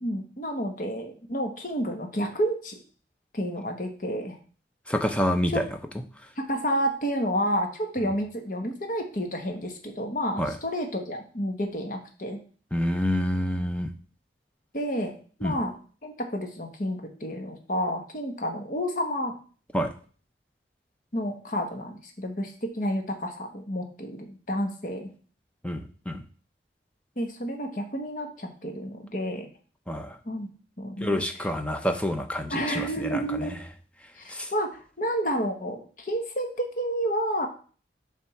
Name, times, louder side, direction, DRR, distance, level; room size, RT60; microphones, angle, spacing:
voice 1, 0.0-2.8 3.3-4.4 5.5-5.6 6.4-12.4 14.7-15.1 15.4-15.7 16.0-19.3 21.1-25.1 27.2-29.5 30.2-30.5 30.8-31.2 32.5-33.6 34.2-37.5, equal, 45° left, 4 dB, 1.2 m, -30 dB
voice 2, 4.9-5.6 6.2-6.3 10.4-10.6 12.7-13.9 15.4-15.5 19.7-19.9 25.6-26.2 29.9-30.2 31.0-33.6 34.0-34.5, equal, 5° left, 6 dB, 0.6 m, -28 dB
7.3 x 3.5 x 5.8 m, 0.41 s
head